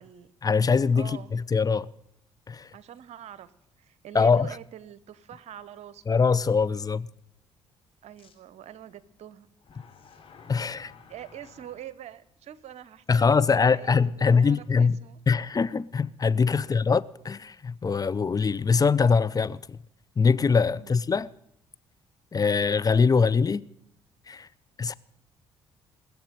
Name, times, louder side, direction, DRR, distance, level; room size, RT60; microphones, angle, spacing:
voice 1, 0.4-1.9 2.5-2.7 4.1-4.5 6.1-7.1 10.5-10.9 13.1-15.0 15.3-19.8 20.2-21.3 22.3-23.7 24.3-24.5 24.8-24.9, left 5 dB, 30° left, 0.6 m, -23 dB
voice 2, 0.9-1.3 2.7-3.5 3.8-6.2 8.0-9.5 10.1-10.2 10.7-10.8 11.1-13.4 13.7-15.2 16.6-16.9 20.7-21.0 22.5-22.7, right 11 dB, 60° right, 0.9 m, -45 dB
sound 1, 2.9-3.0 3.6-3.7 8.2-8.3 9.6-11.8, left 5 dB, 45° left, 3.2 m, -52 dB
20.0 x 7.2 x 9.1 m
hypercardioid pair, 50°, 13 cm